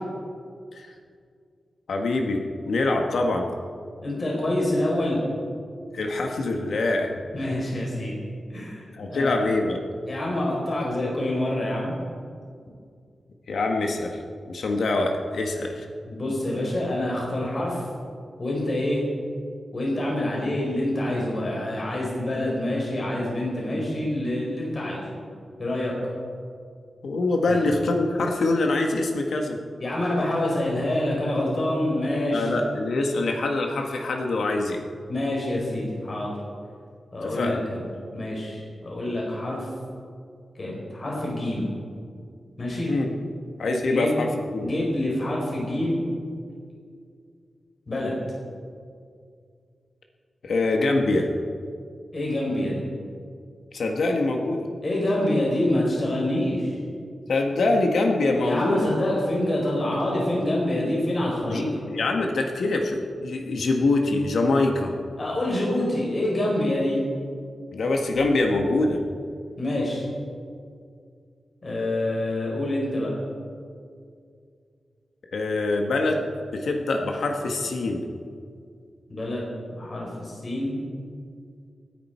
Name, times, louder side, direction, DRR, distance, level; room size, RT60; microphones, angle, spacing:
voice 1, 1.9-3.5 5.9-7.1 7.4-7.5 8.9-9.8 13.5-14.2 14.5-15.8 27.0-29.6 32.3-34.8 37.2-37.6 42.9-43.1 43.6-44.7 50.4-51.3 53.7-54.7 57.3-58.9 61.5-61.6 61.9-64.9 67.7-69.0 75.3-76.3 76.5-78.0, left 2 dB, 75° left, 2 dB, 1.7 m, -24 dB
voice 2, 4.0-5.2 7.3-8.2 8.5-9.5 10.1-12.0 16.1-17.9 18.4-19.0 19.7-25.0 25.6-25.9 27.5-27.6 29.8-32.5 35.1-36.3 37.1-37.8 38.1-39.7 40.5-41.7 42.6-42.9 43.9-44.2 44.6-46.0 47.9-48.1 52.1-52.8 54.8-56.8 58.4-61.8 65.2-67.0 69.6-70.0 71.6-73.1 79.1-80.8, left 1 dB, 35° left, -3 dB, 4.3 m, -26 dB
27.0 x 10.5 x 4.6 m, 2.2 s
wide cardioid pair, 155°, 0 cm